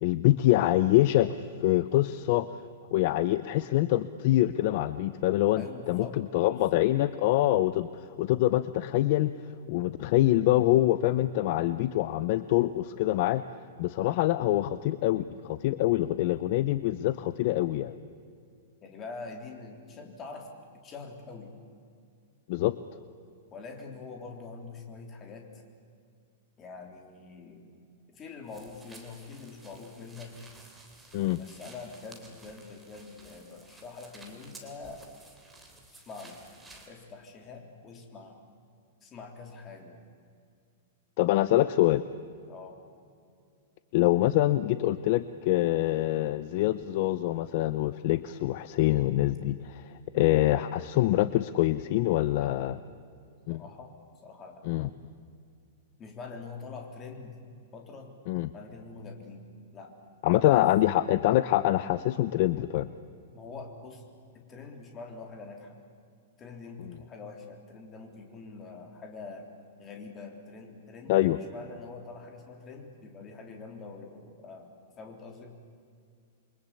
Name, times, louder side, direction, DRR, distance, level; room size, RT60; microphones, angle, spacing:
voice 1, 0.0-2.5 2.9-7.9 8.2-9.3 9.7-13.4 13.8-17.9 22.5-22.7 31.1-31.4 41.2-42.0 43.9-52.8 53.5-53.6 54.7-54.9 58.3-58.5 60.2-62.9 71.1-71.4, left 15 dB, 40° left, 14 dB, 0.7 m, -25 dB
voice 2, 5.6-6.2 6.5-6.9 18.8-20.5 20.8-21.5 23.5-25.6 26.6-27.7 28.1-30.4 31.4-35.0 35.9-36.4 36.9-38.4 39.0-40.0 42.5-42.8 52.3-52.5 53.5-53.9 54.2-54.7 56.0-57.4 57.7-58.1 58.5-59.5 59.7-59.9 60.3-60.7 63.3-64.0 64.3-65.7 66.4-69.5 69.8-74.7 75.0-75.6, left 4 dB, 20° left, 2 dB, 3.7 m, -44 dB
sound 1, 28.5-36.9, right 2 dB, 5° right, 3.2 m, -53 dB
28.5 x 23.5 x 8.6 m, 2.3 s
supercardioid pair, 170°, 0 cm